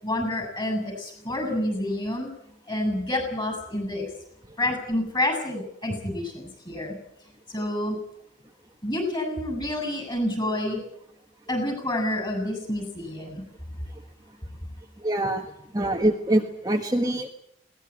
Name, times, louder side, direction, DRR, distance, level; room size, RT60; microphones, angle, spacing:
voice 1, 0.0-2.3 2.7-4.1 4.6-6.9 7.5-8.0 8.8-10.8 11.5-13.4, left 1 dB, 20° left, 6 dB, 7.9 m, -28 dB
voice 2, 15.0-15.4 15.7-17.3, right 1 dB, 20° right, 2 dB, 1.4 m, -24 dB
21.5 x 19.0 x 8.8 m, 0.73 s
head